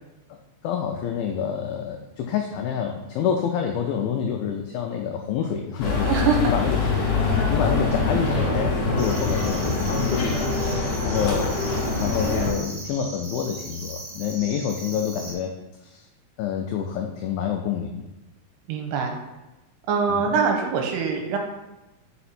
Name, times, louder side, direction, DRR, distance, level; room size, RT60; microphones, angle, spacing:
voice 1, 0.6-6.1 6.5-6.8 7.5-10.4 11.0-11.6 12.0-15.5 15.8-16.1 16.4-18.1 20.1-20.2, left 8 dB, 90° left, 3 dB, 2.0 m, -27 dB
sound 1, 5.8-12.5, left 3 dB, 60° left, 2.1 m, -24 dB
voice 2, 6.1-6.5 18.7-19.1 19.9-21.4, right 5 dB, 90° right, 2 dB, 2.8 m, -23 dB
sound 2, 9.0-15.3, right 2 dB, 70° right, 3.2 m, -39 dB
5.5 x 4.9 x 4.2 m, 1.0 s
omnidirectional pair, 4.8 m